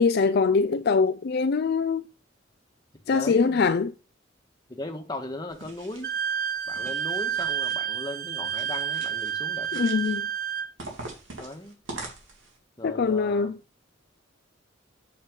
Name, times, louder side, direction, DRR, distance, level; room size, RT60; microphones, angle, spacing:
voice 1, 0.0-2.0 3.1-3.9 9.7-10.3 12.8-13.6, left 5 dB, 55° left, 0.4 m, -23 dB
voice 2, 3.1-3.6 4.7-6.1 6.7-9.8 11.4-11.8 12.8-13.5, left 1 dB, 20° left, 1.4 m, -37 dB
sound 1, 5.5-6.2 6.6-7.8 8.4-9.3 9.6-10.2 10.8-12.6, right 2 dB, 80° right, 3.1 m, -43 dB
Wind instrument woodwind instrument, 6.0-10.7, right 8 dB, 50° right, 0.7 m, -29 dB
8.7 x 6.8 x 3.8 m
head